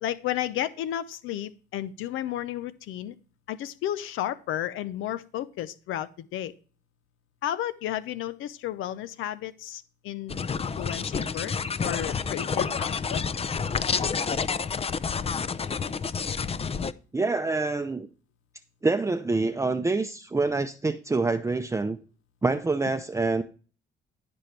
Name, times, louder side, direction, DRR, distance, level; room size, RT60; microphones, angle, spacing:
voice 1, 0.0-3.1 3.5-6.5 7.4-11.5 11.8-13.2, left 12 dB, 90° left, 14 dB, 0.7 m, -33 dB
sound 1, 10.3-16.9, left 5 dB, 30° left, 0.6 m, -29 dB
voice 2, 17.1-18.1 18.8-22.0 22.4-23.4, right 3 dB, 15° right, 8 dB, 0.6 m, -26 dB
14.5 x 5.4 x 3.3 m, 0.37 s
cardioid pair, 90°, 20 cm